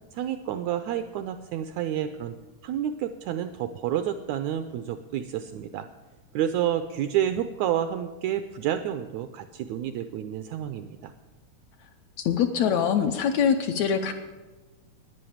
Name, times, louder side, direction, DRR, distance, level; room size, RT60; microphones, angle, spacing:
voice 1, 0.1-2.3 2.6-5.9 6.3-11.1, right 10 dB, 80° right, 10 dB, 1.6 m, -29 dB
voice 2, 12.2-14.1, left 7 dB, 75° left, 6 dB, 1.7 m, -23 dB
11.0 x 9.9 x 8.6 m, 1.2 s
omnidirectional pair, 3.7 m